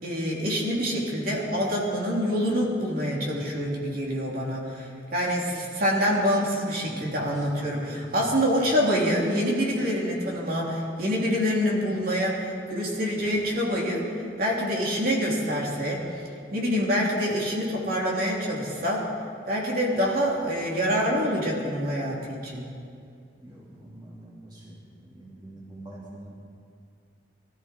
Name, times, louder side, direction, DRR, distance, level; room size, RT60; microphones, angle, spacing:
voice 1, 0.0-14.0 14.4-16.0 16.5-19.0 19.5-22.7, equal, 50° right, -3 dB, 3.3 m, -26 dB
voice 2, 23.4-24.3 24.6-24.7 25.2-26.3, right 1 dB, 25° right, -6 dB, 2.7 m, -44 dB
22.0 x 14.5 x 4.6 m, 2.4 s
head